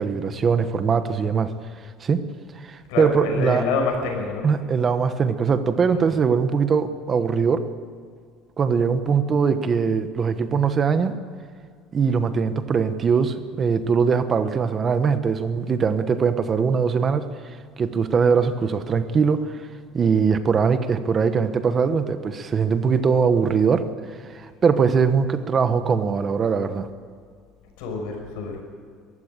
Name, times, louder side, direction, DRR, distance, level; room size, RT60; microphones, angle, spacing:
voice 1, 0.0-1.5 2.0-2.2 2.5-3.6 4.4-7.7 8.6-11.1 11.9-19.7 19.9-26.9, right 6 dB, 25° right, 10 dB, 1.1 m, -21 dB
voice 2, 2.9-4.5 5.9-6.2 27.8-28.6, left 4 dB, 85° left, 2 dB, 6.1 m, -27 dB
22.5 x 15.0 x 8.9 m, 2.1 s
cardioid pair, 155°, 0 cm